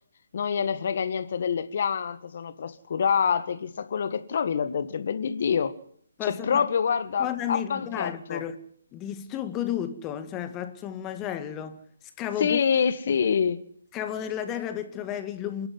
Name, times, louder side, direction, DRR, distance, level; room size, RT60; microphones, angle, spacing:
voice 1, 0.3-5.8 6.2-8.4 12.4-13.6, left 7 dB, 50° left, 1.8 m, -26 dB
voice 2, 6.2-6.7 7.2-8.6 8.9-11.8 12.2-12.6 13.9-15.7, left 10 dB, 20° left, 1.9 m, -32 dB
27.5 x 11.5 x 9.5 m
figure-of-eight pair, 140°, 0 cm